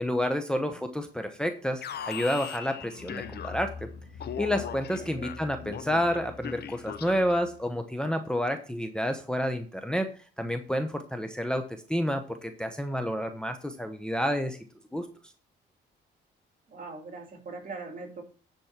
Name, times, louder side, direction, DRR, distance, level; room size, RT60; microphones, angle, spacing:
voice 1, 0.0-3.7 4.4-14.6 14.9-15.1, equal, 5° left, 6 dB, 0.9 m, -29 dB
Alarm, 1.8-3.8 4.2-7.5, left 8 dB, 55° left, 0.8 m, -40 dB
sound 1, 2.8-7.7, left 4 dB, 70° left, 2.1 m, -45 dB
voice 2, 16.7-18.2, right 3 dB, 45° right, 4 dB, 2.5 m, -41 dB
10.0 x 4.4 x 5.8 m, 0.40 s
cardioid pair, 90°, 20 cm